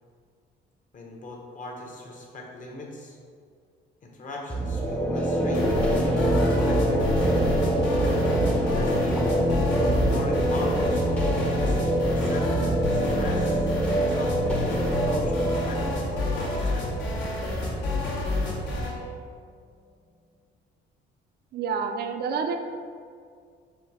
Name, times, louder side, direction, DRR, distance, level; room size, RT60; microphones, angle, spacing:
voice 1, 0.9-3.2 4.0-7.0 8.5-9.2 10.0-14.6 14.9-16.9, left 2 dB, 45° left, 0 dB, 0.9 m, -39 dB
sound 1, 4.5-18.2, right 1 dB, 5° left, 0.6 m, -25 dB
sound 2, 5.5-19.0, left 1 dB, 75° left, 1.2 m, -29 dB
voice 2, 21.5-22.6, right 5 dB, 55° right, 6 dB, 0.4 m, -28 dB
4.3 x 2.6 x 4.7 m, 2.1 s
cardioid pair, 110°, 19 cm